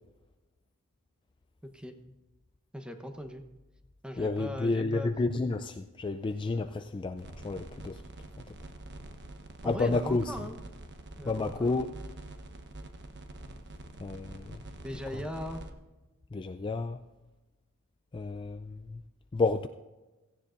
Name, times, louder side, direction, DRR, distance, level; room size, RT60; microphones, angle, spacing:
voice 1, 1.6-1.9 2.7-3.4 4.0-5.1 9.6-10.6 11.2-11.7 14.8-15.6, equal, 5° right, 6 dB, 1.0 m, -39 dB
voice 2, 4.2-8.0 9.6-10.3 11.2-11.9 14.0-14.6 16.3-17.0 18.1-19.0 19.3-19.7, left 3 dB, 20° left, 8 dB, 0.3 m, -30 dB
sound 1, 7.2-15.7, right 1 dB, 55° right, 1.0 m, -46 dB
16.5 x 15.0 x 2.6 m, 1.1 s
head